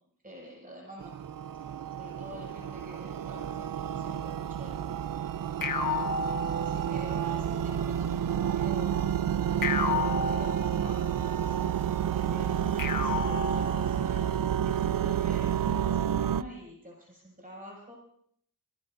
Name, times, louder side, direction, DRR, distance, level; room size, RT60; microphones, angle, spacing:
voice 1, 0.2-1.2 1.6-1.7 2.0-5.0 6.4-9.0 9.6-11.2 11.4-11.6 12.1-17.9, equal, 25° right, -4 dB, 6.6 m, -47 dB
sound 1, 1.0-16.4, right 9 dB, 80° right, 0.5 m, -30 dB
sound 2, 5.6-7.2 9.6-11.2 12.8-14.3, left 4 dB, 80° left, 1.2 m, -32 dB
28.0 x 18.0 x 2.6 m, 0.66 s
wide cardioid pair, 70°, 33 cm